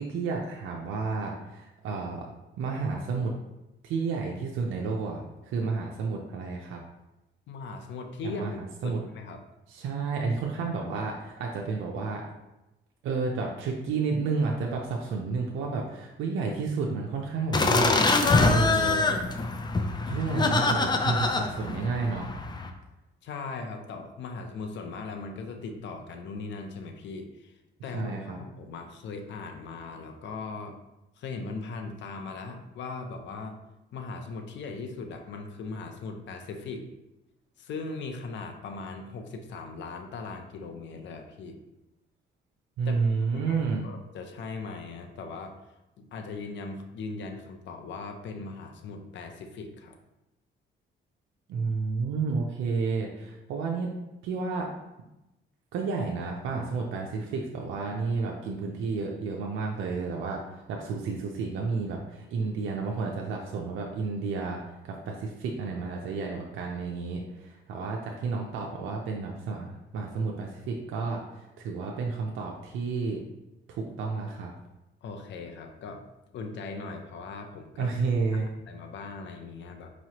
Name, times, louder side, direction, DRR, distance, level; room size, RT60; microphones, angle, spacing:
voice 1, 0.0-2.3 2.6-3.4 3.8-6.8 8.2-9.0 9.7-12.2 13.0-19.2 20.0-22.3 27.9-28.4 42.8-43.9 51.5-53.9 54.2-54.7 55.7-73.2 73.7-74.5 77.8-78.5, right 4 dB, 85° right, 0 dB, 0.5 m, -31 dB
voice 2, 7.5-9.4 23.2-27.5 27.8-28.1 28.4-30.8 31.2-33.6 33.9-36.9 37.6-41.6 42.9-43.1 43.3-45.6 46.0-50.0 75.0-76.0 76.3-77.9 78.7-79.9, left 4 dB, 65° left, 5 dB, 0.6 m, -39 dB
sound 1, 17.5-22.7, left 3 dB, 20° left, 0.4 m, -25 dB
4.7 x 3.0 x 2.9 m, 0.96 s
cardioid pair, 90°, 20 cm